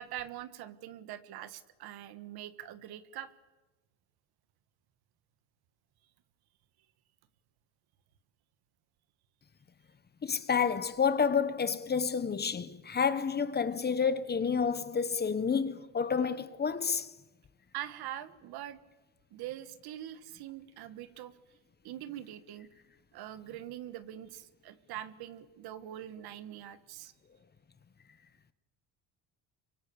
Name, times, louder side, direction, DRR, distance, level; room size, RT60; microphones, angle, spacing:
voice 1, 0.0-3.3 17.7-18.8 19.3-21.3 21.8-22.7 23.1-27.1, right 12 dB, 70° right, 1.5 m, -43 dB
voice 2, 10.2-17.1, left 6 dB, 25° left, 1.0 m, -29 dB
29.0 x 24.0 x 7.1 m
cardioid pair, 130°, 39 cm